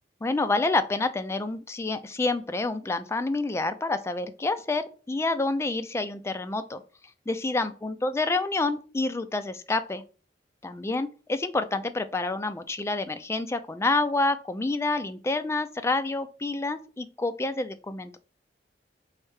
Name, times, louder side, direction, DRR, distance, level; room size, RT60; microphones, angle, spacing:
voice 1, 0.2-6.8 7.3-10.0 10.6-18.2, left 3 dB, 15° left, 9 dB, 0.3 m, -28 dB
3.3 x 2.7 x 4.6 m, 0.37 s
head